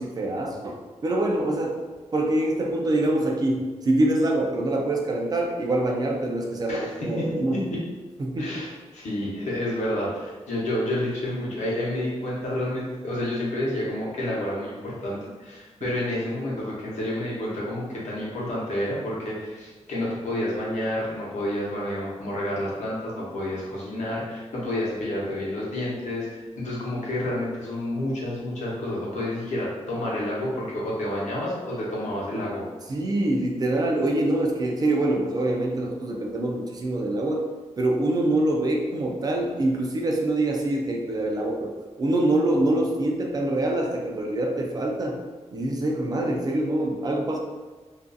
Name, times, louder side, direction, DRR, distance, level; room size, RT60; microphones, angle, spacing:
voice 1, 0.0-1.8 2.1-7.6 8.2-8.6 15.8-15.9 32.9-37.5 37.8-41.7 42.0-45.2 45.5-47.4, right 1 dB, 35° right, 1 dB, 0.3 m, -25 dB
voice 2, 6.7-7.8 8.4-32.6, left 1 dB, 85° left, -5 dB, 0.8 m, -29 dB
2.4 x 2.3 x 2.5 m, 1.3 s
wide cardioid pair, 165°, 12 cm